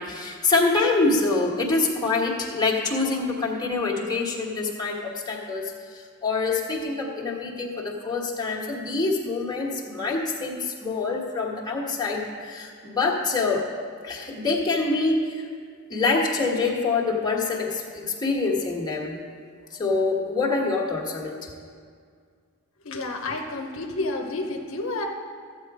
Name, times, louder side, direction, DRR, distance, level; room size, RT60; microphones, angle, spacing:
voice 1, 0.0-5.7 6.2-13.7 14.0-15.3 15.9-19.2 19.8-21.5, left 3 dB, 20° left, -3 dB, 1.5 m, -25 dB
voice 2, 22.8-25.1, left 2 dB, 65° left, 2 dB, 0.9 m, -30 dB
14.0 x 8.0 x 4.9 m, 2.1 s
head